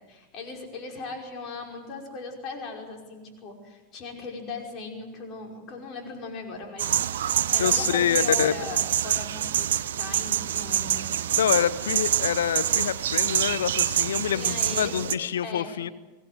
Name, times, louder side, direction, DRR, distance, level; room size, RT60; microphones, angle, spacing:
voice 1, 0.1-7.0 7.5-9.7 10.0-11.0 14.3-15.1 15.4-15.8, left 3 dB, 35° left, 1 dB, 5.5 m, -38 dB
sound 1, 6.8-15.1, right 10 dB, 60° right, 0.7 m, -26 dB
voice 2, 7.6-8.5 11.4-15.9, left 9 dB, 65° left, 15 dB, 0.8 m, -26 dB
24.5 x 18.0 x 7.9 m, 1.2 s
figure-of-eight pair, 90°, 0 cm